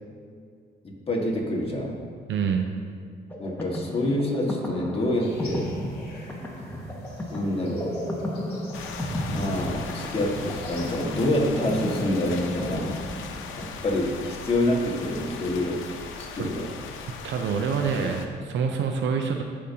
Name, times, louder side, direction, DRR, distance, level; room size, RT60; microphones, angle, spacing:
voice 1, 0.8-2.0 3.4-5.7 7.3-8.0 9.3-12.9 13.6-15.9 16.2-16.7, left 1 dB, 30° left, -2 dB, 1.7 m, -27 dB
voice 2, 2.3-2.7 16.4-16.5 17.2-19.4, right 6 dB, 70° right, 4 dB, 0.7 m, -26 dB
sound 1, 3.3-13.8, equal, 10° left, 1.3 m, -34 dB
sound 2, 5.2-11.0, left 3 dB, 55° left, 2.2 m, -50 dB
sound 3, 8.7-18.3, left 5 dB, 85° left, 0.7 m, -38 dB
15.0 x 5.2 x 2.9 m, 2.1 s
cardioid pair, 90°, 20 cm